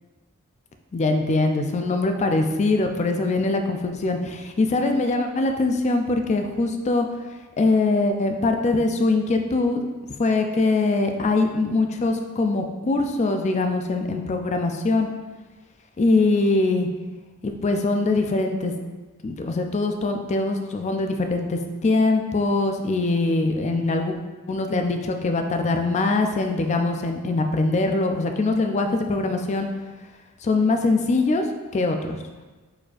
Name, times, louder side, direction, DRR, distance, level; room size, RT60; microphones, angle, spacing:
voice 1, 0.9-7.1 7.6-9.8 10.2-15.1 16.0-16.9 17.4-18.7 19.2-24.2 24.5-29.7 30.4-31.5 31.7-32.2, left 3 dB, 30° left, 5 dB, 0.4 m, -22 dB
4.6 x 4.2 x 2.4 m, 1.3 s
head